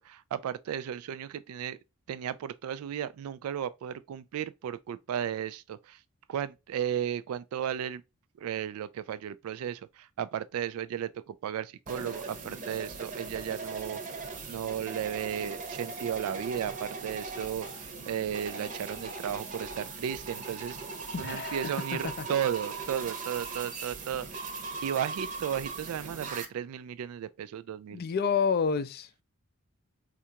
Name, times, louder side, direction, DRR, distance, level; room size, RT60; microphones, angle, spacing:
voice 1, 0.1-1.8 2.1-6.0 6.3-8.0 8.4-14.0 14.5-20.8 21.2-24.3 24.8-28.0, right 9 dB, 85° right, 0.3 m, -34 dB
sound 1, 11.9-26.5, right 4 dB, 35° right, 0.8 m, -39 dB
voice 2, 21.1-22.3 27.9-29.2, left 6 dB, 45° left, 0.4 m, -30 dB
4.3 x 2.5 x 2.8 m
head